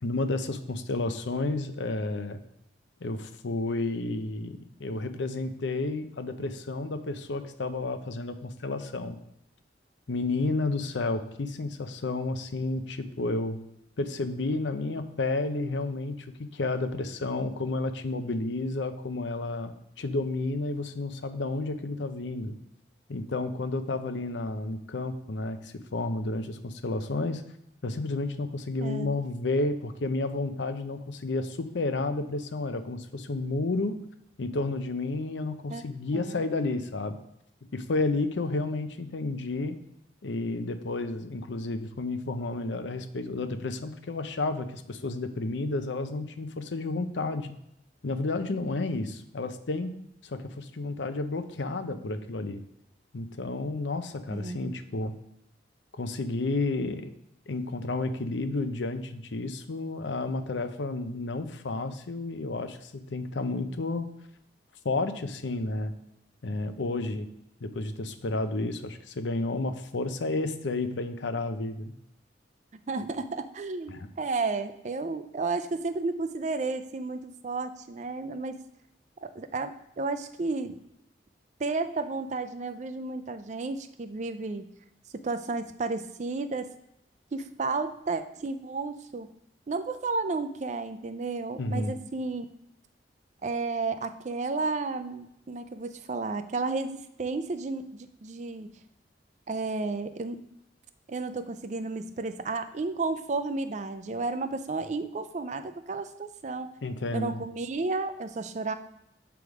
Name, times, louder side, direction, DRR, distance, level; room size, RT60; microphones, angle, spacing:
voice 1, 0.0-2.4 3.0-9.2 10.1-13.6 14.0-22.6 23.1-27.4 27.8-33.9 34.4-37.2 37.7-39.7 40.2-47.5 48.0-49.9 50.2-52.6 53.1-55.1 55.9-57.1 57.5-64.1 64.8-65.9 66.4-67.3 67.6-71.9 73.9-74.1 91.6-91.9 106.8-107.4, left 2 dB, 85° left, 9 dB, 0.6 m, -31 dB
voice 2, 28.8-29.1 35.7-35.8 36.1-36.4 54.3-54.8 72.9-78.6 79.2-80.8 81.6-84.7 85.1-86.7 87.3-89.3 89.7-92.5 93.4-98.7 99.5-100.4 101.1-106.7 107.1-108.7, right 3 dB, 40° right, 10 dB, 0.4 m, -32 dB
7.8 x 3.5 x 4.8 m, 0.81 s
head